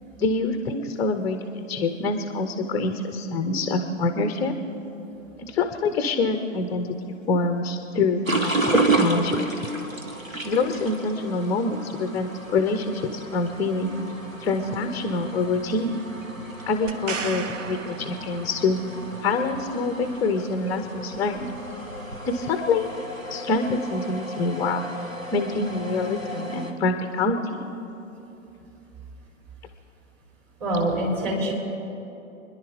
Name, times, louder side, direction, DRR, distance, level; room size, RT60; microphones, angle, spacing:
voice 1, 0.2-4.5 5.4-6.9 7.3-9.5 10.4-14.0 14.4-16.0 16.7-18.8 19.2-21.5 22.3-23.0 23.3-24.9 25.3-27.7, left 3 dB, 10° left, 7 dB, 0.4 m, -26 dB
sound 1, 8.3-26.7, right 2 dB, 90° right, 1.6 m, -31 dB
sound 2, 16.9-18.9 22.5-22.6, right 5 dB, 70° right, 0.9 m, -34 dB
voice 2, 30.6-31.5, right 1 dB, 35° right, -1 dB, 4.3 m, -25 dB
29.0 x 10.5 x 3.9 m, 3.0 s
figure-of-eight pair, 110°, 39 cm